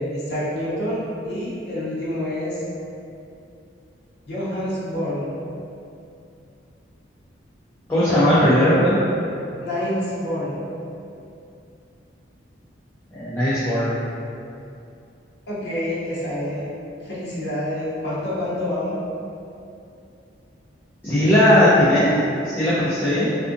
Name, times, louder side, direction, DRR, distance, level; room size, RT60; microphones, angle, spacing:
voice 1, 0.0-2.6 4.3-5.3 9.6-10.6 15.5-16.7 17.0-19.0 22.8-22.9 23.1-23.4, left 1 dB, 60° left, -8 dB, 0.7 m, -27 dB
voice 2, 7.9-9.0 13.1-13.9 21.0-23.3, left 1 dB, 10° left, -12 dB, 0.4 m, -18 dB
2.5 x 2.4 x 2.4 m, 2.6 s
head